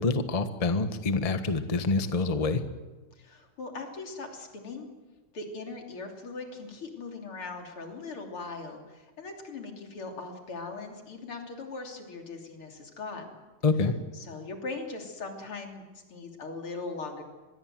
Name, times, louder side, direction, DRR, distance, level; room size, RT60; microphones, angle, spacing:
voice 1, 0.0-2.6 13.6-13.9, left 3 dB, 20° left, 9 dB, 1.0 m, -26 dB
voice 2, 3.2-4.9 5.3-13.4 14.1-15.8 16.1-17.2, left 3 dB, 85° left, 3 dB, 4.0 m, -40 dB
24.5 x 21.5 x 7.7 m, 1.2 s
omnidirectional pair, 2.3 m